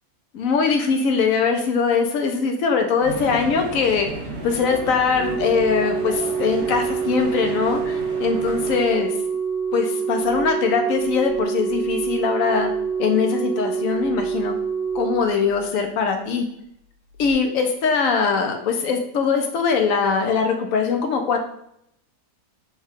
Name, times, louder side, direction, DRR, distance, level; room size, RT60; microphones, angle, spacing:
voice 1, 0.3-4.1 4.4-9.1 9.7-12.7 13.0-14.5 14.9-16.5 17.2-21.4, left 5 dB, 75° left, 5 dB, 1.0 m, -21 dB
sound 1, 3.0-8.8, right 2 dB, 55° right, 0.9 m, -34 dB
Organ, 5.1-16.0 17.1-17.3, right 6 dB, 75° right, 1.5 m, -26 dB
4.5 x 2.3 x 3.5 m, 0.74 s
omnidirectional pair, 1.5 m